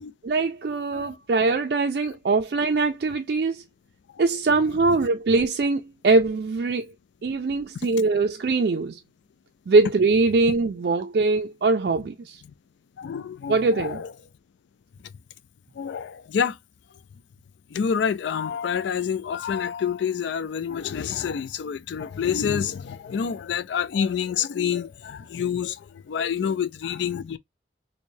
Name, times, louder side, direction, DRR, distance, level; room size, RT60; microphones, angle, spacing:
voice 1, 0.2-3.6 4.2-6.9 7.2-9.0 9.7-12.4 13.5-14.0, right 3 dB, 60° right, 0.4 m, -22 dB
voice 2, 13.0-14.1 15.8-16.6 17.7-27.4, left 7 dB, 75° left, 0.3 m, -28 dB
4.5 x 2.1 x 2.6 m
head